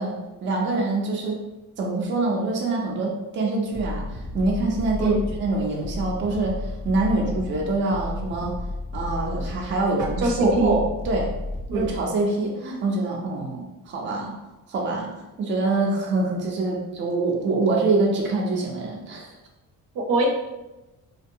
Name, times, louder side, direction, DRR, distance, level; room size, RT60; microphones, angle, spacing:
voice 1, 0.0-1.4 1.8-8.5 8.9-11.3 11.7-14.4 14.7-15.1 15.4-19.3, right 2 dB, 35° right, -1 dB, 0.4 m, -25 dB
sound 1, 3.7-12.0, left 2 dB, 45° left, 0.6 m, -33 dB
voice 2, 10.2-10.8 11.7-11.9 19.9-20.3, right 3 dB, 75° right, 0 dB, 0.6 m, -22 dB
2.6 x 2.2 x 2.6 m, 1.0 s
cardioid pair, 150°, 35 cm